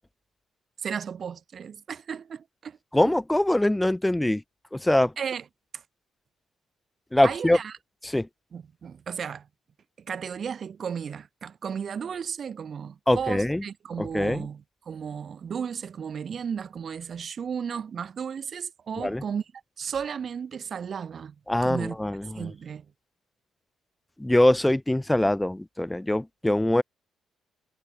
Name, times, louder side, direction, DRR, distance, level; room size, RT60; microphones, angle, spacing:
voice 1, 0.8-2.8 5.2-5.5 5.7-5.8 7.2-7.8 8.5-9.5 10.0-19.4 19.8-21.4 21.6-22.0 22.3-22.9, right 7 dB, 50° right, 0.8 m, -34 dB
voice 2, 2.9-4.4 4.7-5.1 7.1-7.6 8.0-8.3 13.1-13.6 14.0-14.5 19.0-19.2 21.5-22.5 24.2-26.8, left 1 dB, 10° left, 0.5 m, -23 dB
cardioid pair, 90°, 0 cm